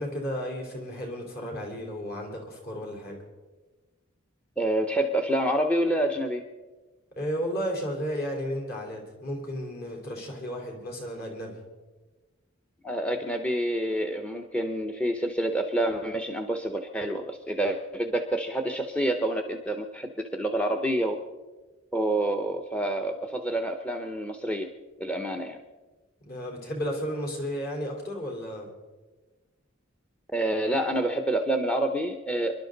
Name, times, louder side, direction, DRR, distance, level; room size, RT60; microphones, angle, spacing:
voice 1, 0.0-3.2 7.2-11.6 26.2-28.7, equal, 50° left, 0 dB, 3.9 m, -33 dB
voice 2, 4.6-6.4 12.8-21.2 21.9-24.7 25.0-25.6 30.3-32.6, right 1 dB, 5° left, 5 dB, 0.7 m, -28 dB
26.0 x 11.5 x 4.0 m, 1.2 s
head